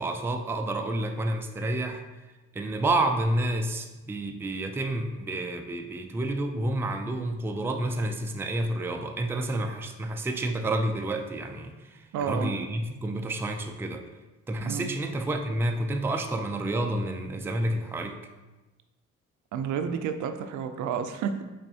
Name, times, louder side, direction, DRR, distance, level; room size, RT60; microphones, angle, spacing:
voice 1, 0.0-2.0 2.5-11.7 12.2-14.0 14.5-18.2, right 1 dB, 10° right, 4 dB, 0.3 m, -29 dB
voice 2, 12.1-12.5 14.6-14.9 19.5-21.4, right 7 dB, 75° right, 8 dB, 0.5 m, -30 dB
5.4 x 3.5 x 2.7 m, 1.1 s
cardioid pair, 90°, 30 cm